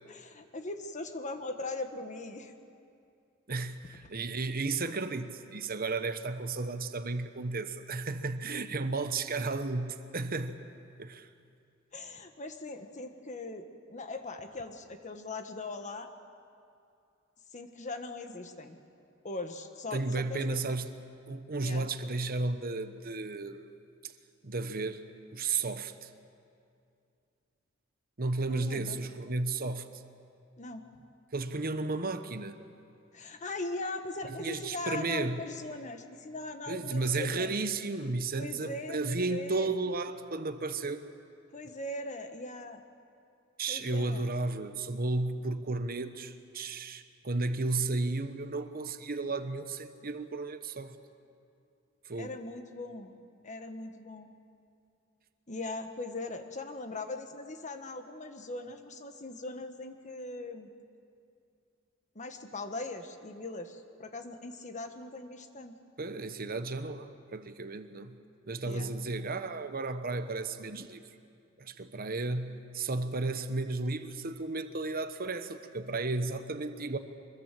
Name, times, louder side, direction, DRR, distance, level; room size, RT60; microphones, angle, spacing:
voice 1, 0.1-2.5 11.9-16.1 17.5-18.8 19.2-20.7 21.6-21.9 28.5-29.0 30.6-30.8 33.1-37.5 38.4-39.7 41.5-42.8 43.7-44.3 52.2-53.2 53.4-54.3 55.5-60.7 62.1-65.8 68.7-68.9, left 2 dB, 35° left, 7 dB, 1.5 m, -40 dB
voice 2, 3.5-10.6 11.0-11.3 19.9-20.9 21.3-23.6 24.0-24.1 24.4-25.0 25.3-26.1 28.2-29.9 31.3-32.6 34.3-35.4 36.7-41.0 43.6-51.0 52.1-52.3 66.0-68.2 68.4-71.0 71.6-77.0, right 3 dB, 45° right, 9 dB, 1.0 m, -33 dB
24.5 x 21.5 x 7.6 m, 2.5 s
head